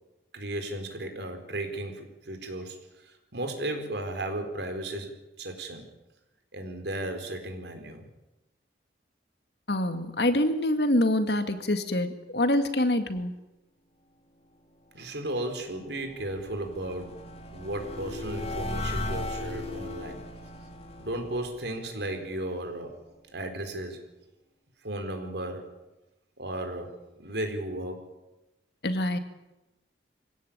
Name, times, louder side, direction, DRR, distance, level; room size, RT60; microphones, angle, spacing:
voice 1, 0.3-5.9 6.5-8.1 14.9-17.2 17.5-20.2 21.0-23.0 23.3-24.0 24.8-25.7 26.4-28.1, right 1 dB, 70° right, 6 dB, 4.5 m, -35 dB
voice 2, 9.7-13.3 28.8-29.2, left 1 dB, 65° left, 8 dB, 2.3 m, -25 dB
sound 1, 15.5-22.6, left 2 dB, 35° left, 2.7 m, -37 dB
25.0 x 17.0 x 9.0 m, 1.0 s
head